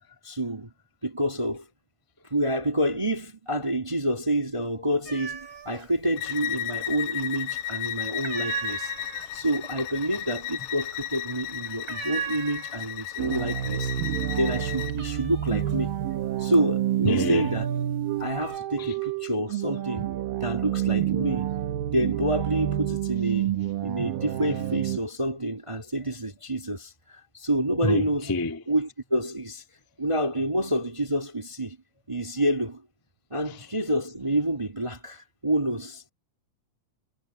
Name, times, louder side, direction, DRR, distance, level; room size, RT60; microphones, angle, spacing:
voice 1, 0.2-0.7 1.0-1.6 2.3-8.9 9.3-15.9 16.4-17.7 18.2-20.1 20.4-21.5 21.9-23.5 23.8-28.3 28.7-29.6 30.0-31.8 32.1-32.8 33.3-36.0, right 1 dB, 15° right, 1.4 m, -28 dB
sound 1, 5.0-5.9 6.2-7.0 7.3-7.7 8.0-13.1 13.4-14.0 14.3-17.5 18.0-18.6, right 8 dB, 40° right, 2.6 m, -38 dB
Bowed string instrument, 6.2-15.0, left 11 dB, 80° left, 2.1 m, -34 dB
sound 2, 13.2-25.0, right 12 dB, 85° right, 2.8 m, -29 dB
voice 2, 17.0-17.5 18.8-18.9 27.8-28.6 33.5-33.6, left 2 dB, 15° left, 0.7 m, -27 dB
omnidirectional pair, 4.0 m